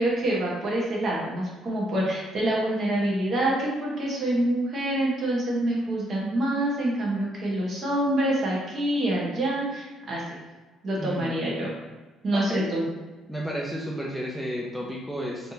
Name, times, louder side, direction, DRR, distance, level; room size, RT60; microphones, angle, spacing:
voice 1, 0.0-10.2 10.8-11.7 12.2-12.8, right 1 dB, 45° right, -4 dB, 1.2 m, -26 dB
voice 2, 11.0-11.4 12.3-12.7 13.3-15.5, equal, 5° left, -3 dB, 0.5 m, -32 dB
3.3 x 2.8 x 2.7 m, 1.2 s
cardioid pair, 110°, 0 cm